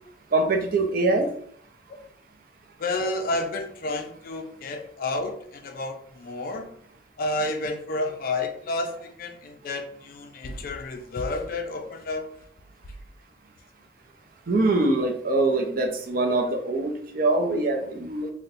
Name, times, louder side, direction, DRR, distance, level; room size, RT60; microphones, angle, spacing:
voice 1, 0.3-1.3 14.5-18.3, right 2 dB, 50° right, 3 dB, 0.5 m, -23 dB
voice 2, 2.8-6.7 7.2-12.3, left 2 dB, 50° left, 6 dB, 0.3 m, -30 dB
2.6 x 2.1 x 3.9 m, 0.63 s
head